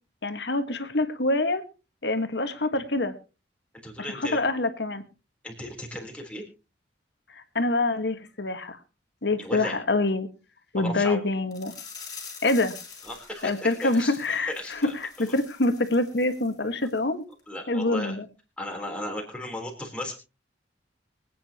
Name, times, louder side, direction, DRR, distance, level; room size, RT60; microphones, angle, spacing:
voice 1, 0.2-1.6 2.0-3.1 4.0-5.0 7.3-8.8 9.2-10.3 10.7-11.7 12.4-12.8 13.4-17.2 17.7-18.3, left 2 dB, 70° left, 9 dB, 1.5 m, -26 dB
voice 2, 3.8-4.4 5.4-6.4 9.4-9.8 10.8-11.2 13.0-13.5 13.8-14.2 14.5-15.3 17.5-18.1 18.6-20.2, left 1 dB, 5° left, 0 dB, 3.6 m, -35 dB
sound 1, 11.5-16.5 16.8-17.0 17.4-17.5, left 6 dB, 20° left, 3.6 m, -45 dB
24.0 x 9.3 x 2.9 m, 0.31 s
head